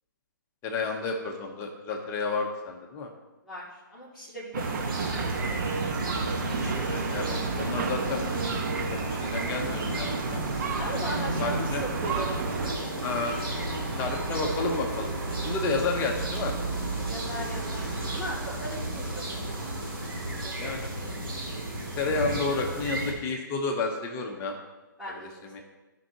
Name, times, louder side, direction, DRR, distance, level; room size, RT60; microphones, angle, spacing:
voice 1, 0.6-3.1 6.6-8.5 8.9-10.4 11.4-11.8 13.0-13.4 14.0-15.1 15.4-16.5 20.6-20.9 22.0-24.5 25.1-25.6, left 3 dB, 25° left, 2 dB, 1.2 m, -31 dB
voice 2, 3.4-5.6 10.7-12.9 17.1-19.5 20.2-21.2 25.0-25.3, equal, 5° right, -12 dB, 2.9 m, -39 dB
sound 1, 4.5-12.7, right 5 dB, 50° right, 1.1 m, -31 dB
sound 2, 4.6-23.1, right 1 dB, 90° right, 2.6 m, -33 dB
14.0 x 5.7 x 3.1 m, 1.1 s
figure-of-eight pair, 135°, 11 cm